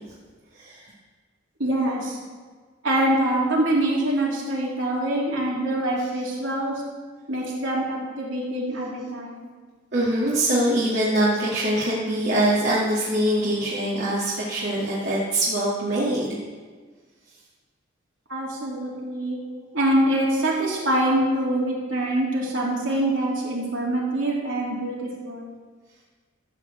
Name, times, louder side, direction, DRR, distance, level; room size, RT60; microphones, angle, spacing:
voice 1, 1.6-2.2 2.8-6.8 7.3-9.5 18.3-25.5, right 1 dB, 75° right, -4 dB, 3.2 m, -25 dB
voice 2, 9.9-16.4, right 1 dB, 60° right, -8 dB, 2.1 m, -23 dB
13.5 x 4.8 x 7.9 m, 1.5 s
head